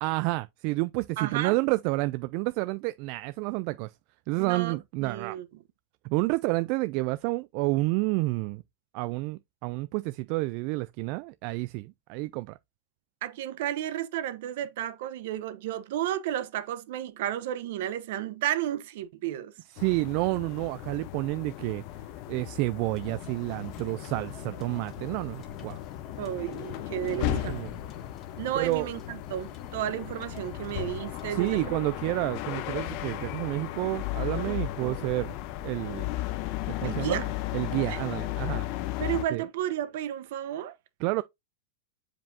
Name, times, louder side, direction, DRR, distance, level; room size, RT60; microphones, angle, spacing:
voice 1, 0.0-3.9 4.3-5.4 6.0-8.6 8.9-12.6 19.8-21.8 22.3-25.8 27.2-27.7 28.5-28.9 31.3-35.3 35.6-36.1 36.7-37.2 37.5-38.7 39.3-39.4 41.0-41.2, right 22 dB, 50° right, 0.3 m, -29 dB
voice 2, 1.2-1.5 4.4-5.5 13.2-19.5 26.2-27.6 28.4-31.8 34.5-35.1 36.8-37.3 37.9-38.0 39.0-40.8, right 12 dB, 65° right, 0.9 m, -33 dB
sound 1, 19.8-39.2, left 15 dB, 50° left, 0.7 m, -35 dB
sound 2, 22.9-31.7, left 4 dB, 30° left, 1.8 m, -48 dB
7.3 x 5.0 x 2.7 m
supercardioid pair, 140°, 0 cm